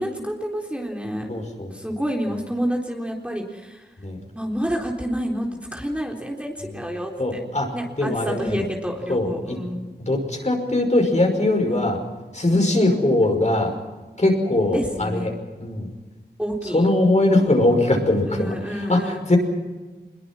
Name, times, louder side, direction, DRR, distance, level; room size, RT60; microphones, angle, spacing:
voice 1, 0.0-1.3 1.7-3.8 4.3-7.4 7.7-9.8 11.7-11.9 12.5-12.8 14.7-15.3 16.4-16.9 18.3-19.2, equal, 5° right, 0 dB, 3.8 m, -28 dB
voice 2, 1.3-1.7 4.0-4.2 6.6-6.8 7.2-7.7 8.0-8.7 9.1-9.6 10.0-12.0 12.3-13.7 14.2-15.9 16.7-19.4, left 1 dB, 40° left, 3 dB, 5.6 m, -21 dB
25.0 x 22.0 x 6.1 m, 1.3 s
wide cardioid pair, 80°, 17 cm